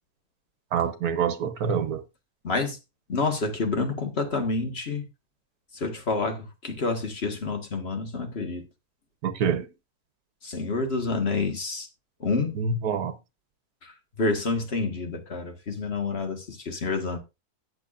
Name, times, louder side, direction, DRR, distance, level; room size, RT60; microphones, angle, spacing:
voice 1, 0.7-2.0 9.2-9.7 12.5-13.2, right 6 dB, 75° right, 1.4 m, -26 dB
voice 2, 2.4-2.8 3.1-5.0 5.7-8.6 10.4-11.9 12.2-12.6 13.8-13.9 14.2-17.2, left 3 dB, 40° left, 1.8 m, -28 dB
17.0 x 6.9 x 2.5 m
omnidirectional pair, 1.6 m